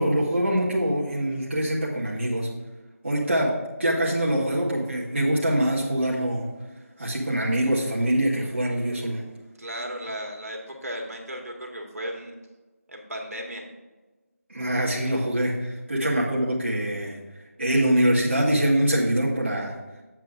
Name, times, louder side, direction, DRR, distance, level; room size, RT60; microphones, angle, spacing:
voice 1, 0.0-2.5 3.0-3.5 3.8-6.5 7.0-9.2 14.5-17.2 17.6-19.7, right 1 dB, 50° right, -5 dB, 1.7 m, -24 dB
voice 2, 9.6-12.3 12.9-13.6, equal, 75° right, 0 dB, 2.1 m, -35 dB
7.7 x 7.4 x 3.7 m, 1.2 s
figure-of-eight pair, 165°, 8 cm